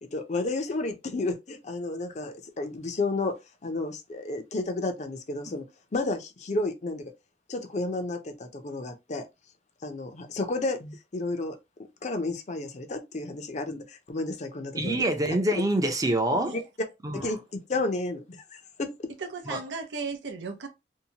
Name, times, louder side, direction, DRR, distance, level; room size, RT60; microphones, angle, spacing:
voice 1, 0.0-5.7 5.9-7.1 7.5-9.2 9.8-11.6 12.0-15.1 16.5-16.6 17.1-18.2 18.5-19.1, left 2 dB, 40° left, 0.5 m, -32 dB
voice 2, 14.8-16.5 17.0-17.3 19.5-19.6, right 1 dB, 20° right, 0.5 m, -26 dB
voice 3, 19.2-20.7, right 4 dB, 85° right, 0.6 m, -36 dB
2.7 x 2.1 x 2.8 m
head